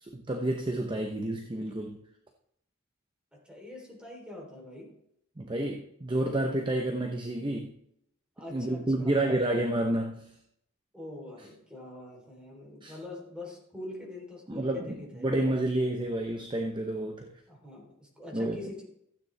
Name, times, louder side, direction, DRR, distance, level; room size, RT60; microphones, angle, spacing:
voice 1, 0.0-2.0 5.4-7.8 8.5-10.3 12.8-12.9 14.5-17.3 18.3-18.6, right 1 dB, 25° right, 3 dB, 0.8 m, -30 dB
voice 2, 3.3-4.9 8.3-9.4 10.9-15.5 17.5-18.8, left 1 dB, 5° right, -2 dB, 3.5 m, -44 dB
15.0 x 9.2 x 3.4 m, 0.76 s
head